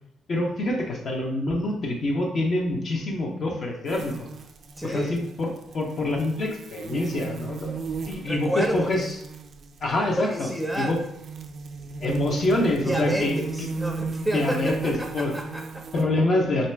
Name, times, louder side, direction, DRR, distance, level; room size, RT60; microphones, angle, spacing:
voice 1, 0.3-4.3 4.8-7.8 8.1-9.1 9.8-10.5 10.8-11.0 12.0-13.7 14.2-15.3 15.9-16.7, left 2 dB, 50° left, 0 dB, 0.8 m, -26 dB
sound 1, 3.9-16.0, right 4 dB, 55° right, 0.4 m, -36 dB
voice 2, 4.8-5.2 8.3-9.2 10.2-11.0 12.8-15.9, right 1 dB, 5° right, 2 dB, 0.5 m, -30 dB
3.2 x 2.7 x 3.3 m, 0.78 s
cardioid pair, 90°, 0 cm